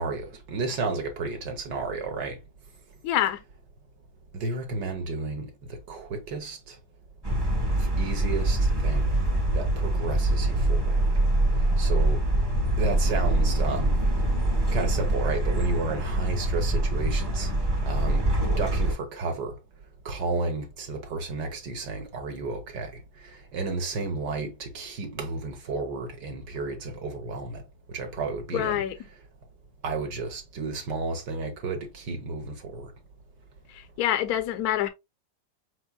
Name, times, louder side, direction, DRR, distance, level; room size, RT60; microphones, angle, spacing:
voice 1, 0.0-2.4 4.3-5.5 5.9-6.8 7.8-9.1 9.5-11.1 11.8-12.2 12.8-14.0 14.7-17.5 17.8-19.5 20.0-22.9 23.2-27.6 27.9-28.8 29.8-32.9, right 3 dB, 75° right, 1.6 m, -32 dB
voice 2, 3.0-3.4 28.5-28.9 34.0-34.9, left 12 dB, 70° left, 0.9 m, -25 dB
sound 1, 7.2-18.9, right 1 dB, 20° right, 0.7 m, -24 dB
4.7 x 4.4 x 2.2 m
omnidirectional pair, 1.9 m